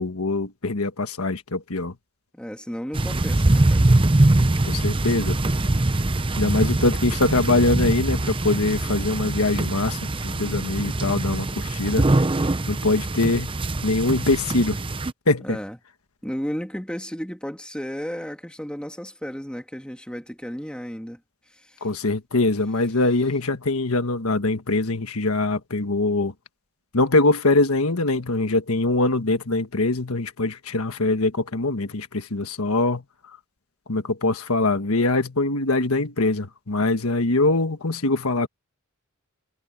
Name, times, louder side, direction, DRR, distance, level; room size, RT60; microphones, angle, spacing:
voice 1, 0.0-1.9 4.6-5.4 6.4-10.0 10.2-12.1 12.7-13.5 13.8-14.8 15.3-15.6 21.8-26.3 26.9-33.0 33.9-38.5, left 2 dB, 85° left, 1.5 m, -23 dB
voice 2, 2.3-3.9 15.4-15.8 16.2-21.2, equal, 5° left, 2.6 m, -33 dB
sound 1, 2.9-15.1, right 2 dB, 25° right, 0.8 m, -23 dB
head